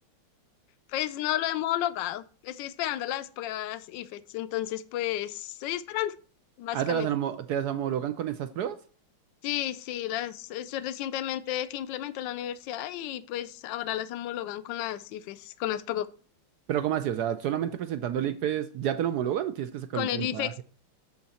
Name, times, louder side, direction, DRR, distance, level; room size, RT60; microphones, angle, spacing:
voice 1, 0.9-6.1 6.6-7.1 9.4-16.1 19.9-20.6, left 13 dB, 75° left, 1.1 m, -32 dB
voice 2, 6.7-8.8 16.7-20.6, right 10 dB, 80° right, 0.9 m, -29 dB
7.1 x 6.6 x 4.2 m
omnidirectional pair, 2.3 m